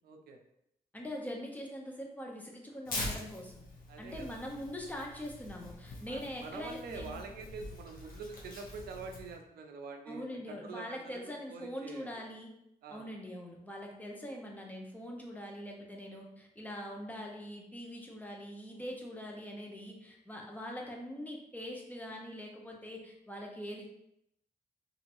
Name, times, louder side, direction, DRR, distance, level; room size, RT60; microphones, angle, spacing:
voice 1, 0.0-0.4 3.9-4.3 6.1-12.2 12.8-13.1, right 4 dB, 80° right, 4 dB, 0.5 m, -46 dB
voice 2, 0.9-3.6 4.0-7.2 10.1-12.5 12.9-23.9, equal, 10° left, 0 dB, 0.8 m, -43 dB
Tearing, 2.8-9.3, left 2 dB, 65° left, 0.8 m, -44 dB
2.8 x 2.6 x 2.6 m, 0.78 s
cardioid pair, 65°, 16 cm